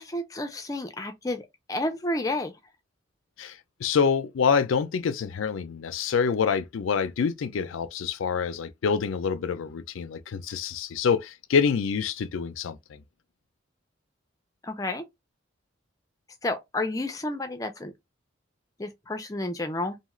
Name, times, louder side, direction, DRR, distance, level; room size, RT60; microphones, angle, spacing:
voice 1, 0.0-2.5 14.6-15.1 16.4-17.9 18.8-20.0, left 2 dB, 15° left, 0.4 m, -31 dB
voice 2, 3.4-13.0, left 6 dB, 80° left, 0.4 m, -26 dB
2.7 x 2.4 x 2.9 m
head